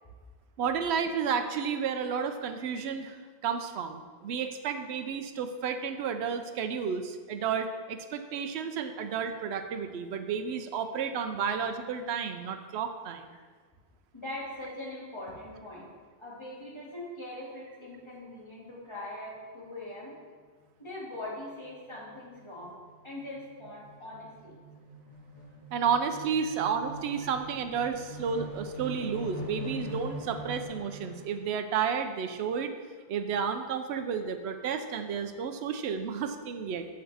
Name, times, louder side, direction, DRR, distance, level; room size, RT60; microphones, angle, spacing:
voice 1, 0.6-3.2 3.4-13.3 25.7-32.7 33.1-36.9, right 6 dB, 85° right, 8 dB, 0.8 m, -31 dB
voice 2, 14.1-15.9 16.2-20.1 20.8-22.8 23.0-24.6 26.4-26.5 27.2-27.3 28.2-28.3 35.9-36.1, left 1 dB, 25° left, -6 dB, 1.9 m, -42 dB
sound 1, 20.6-20.9 21.3-21.4 21.7-31.3, right 1 dB, 45° left, 2.2 m, -43 dB
7.7 x 6.6 x 3.4 m, 1.5 s
omnidirectional pair, 1.1 m